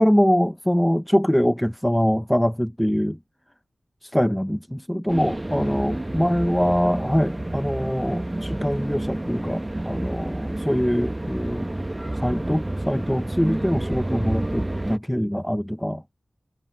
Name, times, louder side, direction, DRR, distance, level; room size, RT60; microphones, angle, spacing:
voice 1, 0.0-3.2 4.0-11.7 12.2-16.0, equal, 5° left, 0.5 m, -23 dB
sound 1, 5.1-15.0, right 1 dB, 25° right, 0.9 m, -29 dB
cardioid pair, 45°, 0 cm